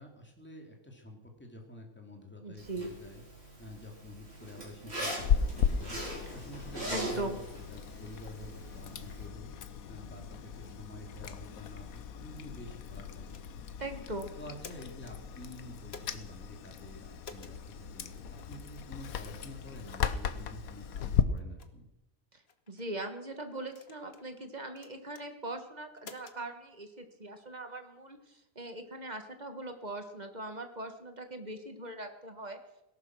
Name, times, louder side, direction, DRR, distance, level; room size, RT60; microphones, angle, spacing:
voice 1, 0.0-3.2 3.6-6.0 6.3-7.3 7.7-9.5 9.9-13.6 14.4-21.9, left 1 dB, 10° left, 2 dB, 2.6 m, -49 dB
voice 2, 2.4-2.9 6.9-7.4 13.8-14.3 22.3-22.4 22.7-32.6, right 2 dB, 30° right, 7 dB, 1.6 m, -40 dB
Zipper (clothing), 2.6-9.3, right 1 dB, 50° right, 5.1 m, -41 dB
Chewing mastication, 5.2-21.2, left 8 dB, 90° left, 1.3 m, -36 dB
sound 1, 13.3-13.7 14.4-15.2 15.9-16.2 17.2-17.6 18.4-18.5 19.1-19.3 19.9-20.1 20.7-20.8 21.4-21.7 22.5-22.9 23.7-24.3 24.8-25.3 26.0-26.4, left 5 dB, 50° left, 1.3 m, -51 dB
18.0 x 11.5 x 6.2 m, 0.95 s
omnidirectional pair, 1.4 m